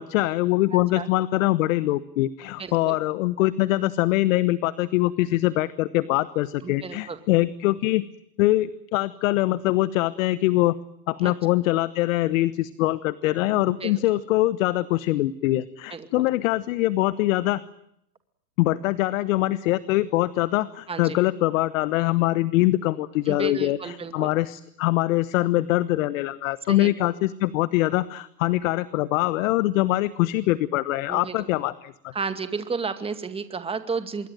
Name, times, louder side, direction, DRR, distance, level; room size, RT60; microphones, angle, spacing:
voice 1, 0.0-8.0 8.4-10.8 11.1-17.6 18.6-32.1, left 17 dB, 50° left, 16 dB, 1.2 m, -23 dB
voice 2, 2.6-2.9 6.6-7.2 11.2-11.3 13.6-13.9 15.9-16.1 20.9-21.2 23.3-24.3 26.7-27.1 31.1-31.4 32.1-34.3, right 5 dB, 10° right, 9 dB, 2.2 m, -32 dB
26.5 x 22.0 x 9.2 m, 0.76 s
hypercardioid pair, 130°, 50 cm